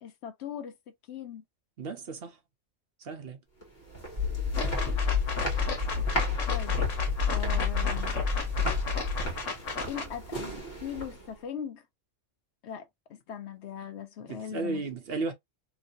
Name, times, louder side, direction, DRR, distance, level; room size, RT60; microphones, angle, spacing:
voice 1, 0.0-0.7 1.1-1.4 4.5-5.0 6.5-6.9 7.3-8.2 9.9-11.8 12.6-14.8, left 8 dB, 70° left, 0.9 m, -40 dB
voice 2, 1.8-2.4 3.0-3.4 14.3-15.3, right 3 dB, 60° right, 0.9 m, -34 dB
sound 1, 3.6-11.4, right 1 dB, 40° left, 1.4 m, -38 dB
sound 2, 4.2-9.3, left 6 dB, 20° right, 1.0 m, -29 dB
sound 3, 4.5-10.1, left 4 dB, 85° left, 1.3 m, -35 dB
3.0 x 2.7 x 2.5 m
omnidirectional pair, 1.3 m